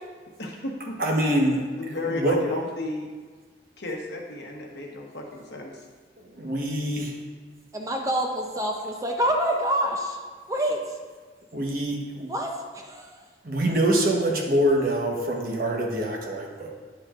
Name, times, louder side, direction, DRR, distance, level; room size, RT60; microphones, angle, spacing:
voice 1, 0.4-1.0 1.8-3.1 3.8-5.8, left 2 dB, 70° left, 0 dB, 1.0 m, -33 dB
voice 2, 1.0-1.6 2.0-2.6 6.4-7.1 11.5-12.3 13.4-16.7, right 1 dB, 50° right, -1 dB, 1.1 m, -24 dB
voice 3, 7.7-10.2 10.5-10.8 12.3-13.2, right 1 dB, 15° right, 1 dB, 0.5 m, -27 dB
9.5 x 6.7 x 2.5 m, 1.5 s
head